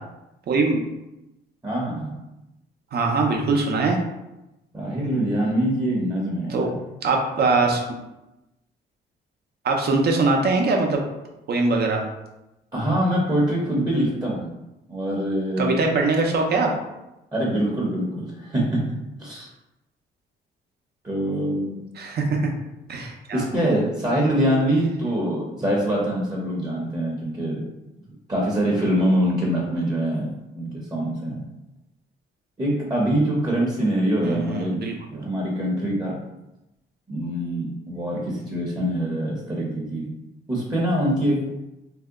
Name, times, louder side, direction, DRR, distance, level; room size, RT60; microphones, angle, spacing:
voice 1, 0.5-0.8 2.9-4.0 6.5-6.7 7.0-7.8 9.6-11.0 11.5-12.0 15.6-16.7 22.0-22.4 22.9-23.4 34.2-34.9, right 3 dB, 55° right, 2 dB, 0.7 m, -22 dB
voice 2, 1.6-2.2 4.7-6.7 12.7-14.5 14.9-15.8 17.3-18.8 19.2-19.5 21.0-21.8 23.3-27.6 28.3-31.4 32.6-34.8 35.1-36.2 37.1-40.1 40.5-41.5, right 1 dB, 20° right, -4 dB, 0.8 m, -24 dB
2.7 x 2.1 x 3.6 m, 0.94 s
cardioid pair, 90°, 20 cm